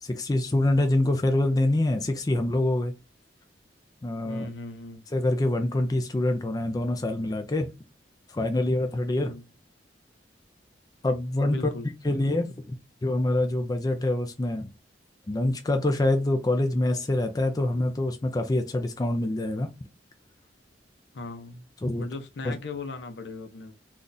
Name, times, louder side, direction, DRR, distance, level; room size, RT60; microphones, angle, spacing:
voice 1, 0.0-2.9 4.0-4.4 5.1-7.7 8.3-9.3 11.0-11.6 12.0-12.8 13.0-14.7 15.3-19.7 21.8-22.0 22.4-22.6, left 1 dB, 20° left, 0.4 m, -25 dB
voice 2, 4.2-5.0 9.1-9.4 11.4-11.9 21.1-21.6 22.0-23.7, left 3 dB, 70° left, 0.6 m, -38 dB
3.8 x 2.4 x 2.6 m
head